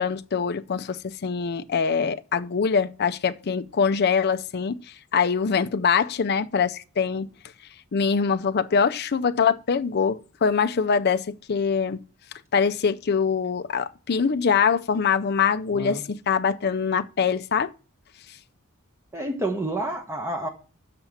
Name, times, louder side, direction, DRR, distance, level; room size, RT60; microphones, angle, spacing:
voice 1, 0.0-4.8 5.1-7.3 7.9-12.0 12.5-17.7, left 6 dB, 50° left, 0.5 m, -23 dB
voice 2, 15.7-16.0 19.1-20.5, right 1 dB, 10° right, 1.0 m, -29 dB
6.7 x 5.6 x 7.2 m
head